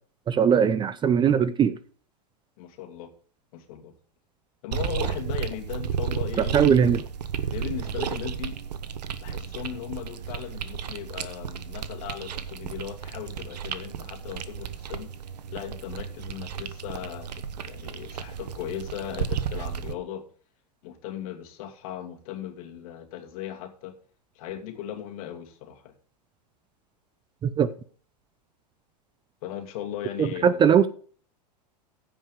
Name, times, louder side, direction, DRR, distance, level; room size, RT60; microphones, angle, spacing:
voice 1, 0.3-1.7 6.5-7.0 27.4-27.7 30.2-30.9, right 7 dB, 20° right, 0.6 m, -20 dB
voice 2, 2.6-3.1 3.5-3.9 4.6-6.9 7.5-8.6 9.2-15.1 15.5-20.2 20.8-23.9 24.3-25.9 29.4-30.7, left 11 dB, 55° left, 2.7 m, -37 dB
sound 1, 4.7-19.9, right 7 dB, 75° right, 1.1 m, -33 dB
15.5 x 5.4 x 5.2 m
hypercardioid pair, 110°, 21 cm